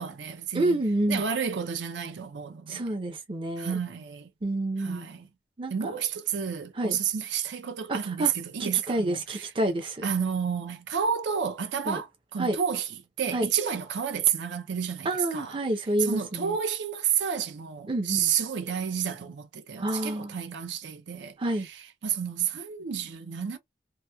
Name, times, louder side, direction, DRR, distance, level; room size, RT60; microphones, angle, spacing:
voice 1, 0.0-0.8 1.1-2.8 3.6-4.3 4.8-5.3 5.7-9.5 10.0-12.9 13.2-15.6 16.0-21.4 22.0-23.6, right 7 dB, 80° right, 0.5 m, -30 dB
voice 2, 0.5-1.2 2.7-3.8 4.4-5.1 5.6-5.9 6.7-7.0 7.9-8.3 8.6-10.0 11.9-12.0 12.4-12.6 13.3-13.5 15.0-16.6 17.9-18.3 19.8-20.4 21.4-21.7, right 1 dB, 30° right, 0.5 m, -28 dB
2.9 x 2.0 x 2.2 m
head